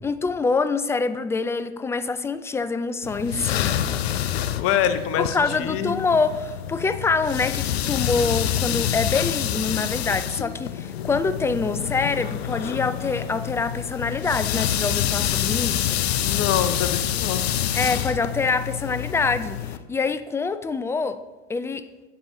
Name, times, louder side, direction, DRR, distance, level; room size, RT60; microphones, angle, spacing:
voice 1, 0.0-3.8 5.2-16.0 17.7-21.2 21.5-21.8, left 4 dB, 10° left, 13 dB, 0.3 m, -25 dB
sound 1, 3.0-19.8, left 11 dB, 80° left, 0.6 m, -27 dB
voice 2, 4.6-6.1 16.2-17.5, left 9 dB, 45° left, 10 dB, 0.8 m, -25 dB
10.0 x 8.0 x 2.7 m, 1.2 s
hypercardioid pair, 85°, 31 cm